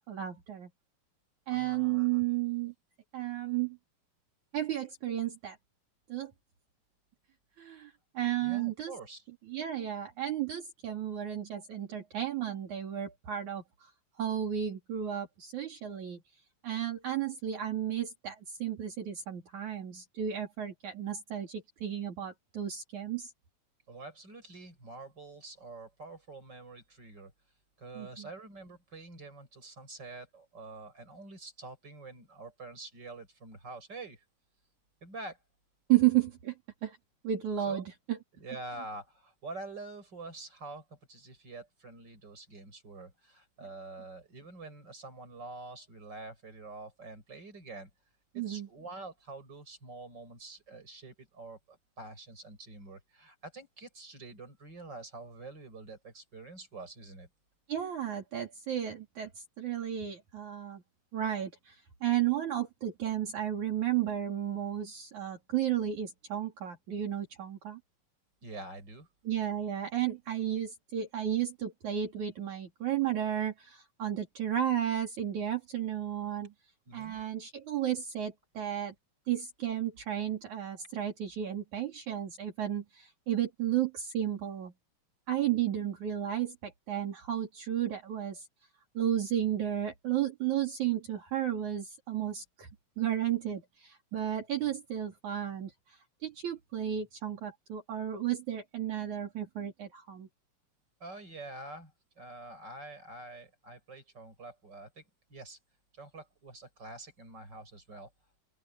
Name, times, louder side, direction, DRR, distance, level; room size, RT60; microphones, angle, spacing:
voice 1, 0.1-0.7 1.5-2.7 3.1-3.8 4.5-5.6 6.1-6.3 7.6-8.9 9.5-13.9 14.2-16.2 16.6-23.3 28.0-28.3 35.9-36.5 36.8-37.0 37.2-38.2 48.4-48.7 57.7-60.8 61.1-67.8 69.2-76.5 76.9-78.9 79.3-84.7 85.3-88.5 88.9-92.7 93.0-100.3, right 11 dB, 60° right, 4.5 m, -33 dB
voice 2, 1.5-2.2 8.4-9.2 23.9-27.3 27.8-34.2 35.0-35.4 37.7-37.8 38.3-47.9 48.3-57.3 68.4-69.1 76.9-77.2 101.0-105.0 105.3-105.6 105.9-108.1, right 2 dB, 30° right, 7.7 m, -46 dB
open air
omnidirectional pair, 3.9 m